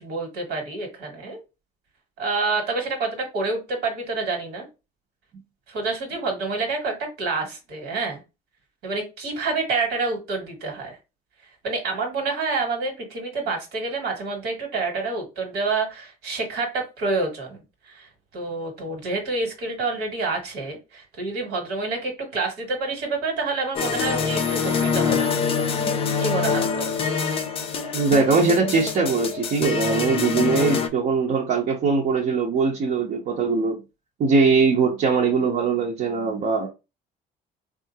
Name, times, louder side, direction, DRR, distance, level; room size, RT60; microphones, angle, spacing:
voice 1, 0.0-1.4 2.2-4.7 5.7-8.2 8.8-11.0 11.6-25.4 26.2-26.9, right 3 dB, 85° right, 1.5 m, -28 dB
sound 1, 23.7-30.9, left 6 dB, 35° left, 0.5 m, -25 dB
voice 2, 27.9-33.8 34.2-36.7, right 4 dB, 55° right, 0.7 m, -21 dB
3.6 x 2.4 x 2.7 m
cardioid pair, 110°, 17 cm